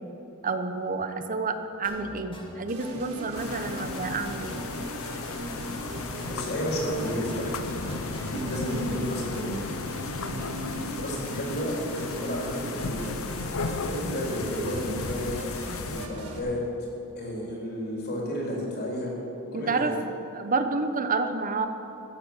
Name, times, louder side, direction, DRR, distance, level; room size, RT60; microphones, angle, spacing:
voice 1, 0.4-4.6 8.3-8.4 10.3-10.6 13.9-14.2 19.5-19.9 20.3-21.7, right 3 dB, 40° right, 8 dB, 0.9 m, -29 dB
sound 1, 1.8-9.6, equal, 25° left, 1.8 m, -44 dB
sound 2, 2.7-16.4, right 1 dB, 70° right, 1.9 m, -39 dB
sound 3, 3.3-16.1, left 4 dB, 65° left, 0.7 m, -35 dB
voice 2, 6.3-7.6 8.2-9.6 10.9-13.2 13.8-15.4 15.9-16.6 17.2-19.1 19.5-20.0, equal, 50° left, -3 dB, 3.7 m, -32 dB
14.0 x 8.1 x 7.3 m, 2.9 s
head